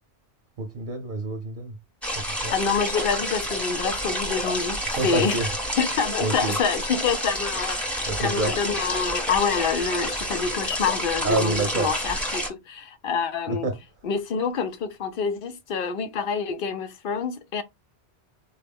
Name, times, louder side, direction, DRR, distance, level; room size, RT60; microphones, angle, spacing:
voice 1, 0.6-1.7 2.4-2.6 4.9-5.6 6.2-6.6 8.1-8.6 11.2-12.0 13.5-13.8, right 3 dB, 55° right, 0.7 m, -27 dB
sound 1, 2.0-12.5, equal, ahead, 0.9 m, -29 dB
voice 2, 2.5-5.4 5.8-7.8 8.2-13.7 14.0-17.6, left 6 dB, 65° left, 0.7 m, -27 dB
4.4 x 2.4 x 3.4 m
omnidirectional pair, 1.1 m